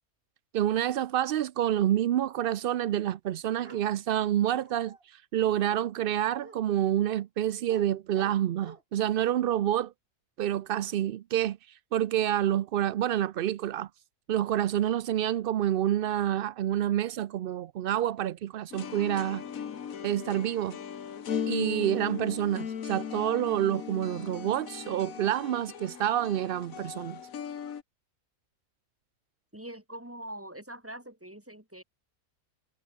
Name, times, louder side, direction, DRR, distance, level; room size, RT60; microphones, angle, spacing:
voice 1, 0.5-9.9 10.4-11.6 11.9-13.9 14.3-19.4 20.0-20.8 21.5-27.2, right 11 dB, 85° right, 0.5 m, -28 dB
Bark, 3.6-3.9 4.5-5.0 5.7-5.9 6.4-6.6 7.1-7.2 7.7-7.9 8.1-8.8 9.2-9.3, right 3 dB, 40° right, 2.8 m, -48 dB
sound 1, 18.7-27.8, left 8 dB, 70° left, 1.7 m, -38 dB
voice 2, 29.5-31.8, right 1 dB, 10° right, 2.9 m, -43 dB
omnidirectional pair, 1.5 m